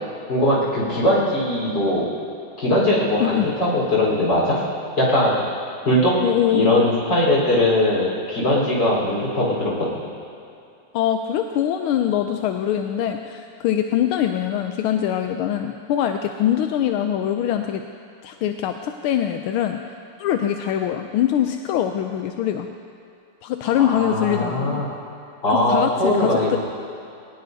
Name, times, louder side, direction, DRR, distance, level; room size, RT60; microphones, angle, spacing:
voice 1, 0.3-2.1 2.6-4.6 5.0-5.4 5.9-6.2 6.5-9.9 23.7-25.0 25.4-26.6, left 1 dB, 55° left, -5 dB, 5.1 m, -20 dB
voice 2, 6.2-6.9 10.9-17.8 18.2-19.8 20.2-22.7 23.4-24.8 25.5-26.6, left 10 dB, 90° left, 6 dB, 1.5 m, -23 dB
20.5 x 19.0 x 2.8 m, 2.5 s
omnidirectional pair, 2.3 m